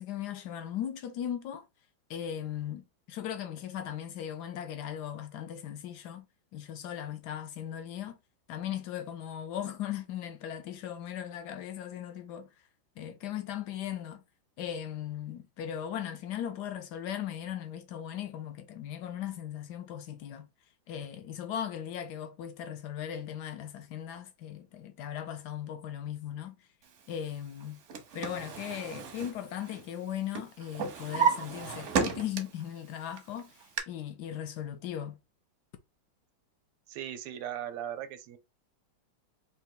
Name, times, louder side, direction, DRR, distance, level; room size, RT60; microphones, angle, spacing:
voice 1, 0.0-1.6 2.1-6.3 6.5-8.2 8.5-12.5 13.0-14.2 14.6-20.5 20.9-26.6 27.1-27.8 28.1-35.2, left 10 dB, 75° left, 0.9 m, -38 dB
Drawer open or close, 27.6-30.0 30.3-32.7 33.1-33.8, right 6 dB, 65° right, 0.7 m, -32 dB
voice 2, 36.9-38.4, right 10 dB, 90° right, 1.6 m, -38 dB
4.2 x 2.7 x 3.8 m
omnidirectional pair, 2.3 m